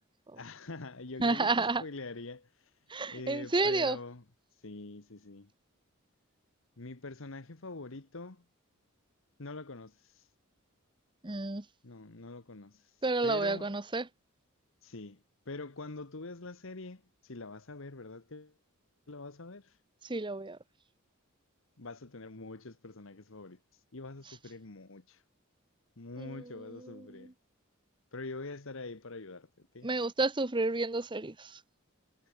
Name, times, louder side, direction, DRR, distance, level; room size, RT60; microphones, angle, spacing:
voice 1, 0.4-2.7 3.1-4.2 4.5-5.5 6.8-8.4 9.4-10.3 11.8-13.8 14.8-18.5 19.1-19.8 21.8-25.2 26.0-27.3 28.1-29.9, left 3 dB, 65° left, 1.4 m, -45 dB
voice 2, 1.2-1.8 2.9-4.0 11.2-11.6 13.0-14.1 20.0-20.6 26.2-27.3 29.8-31.6, right 3 dB, 20° right, 1.1 m, -31 dB
head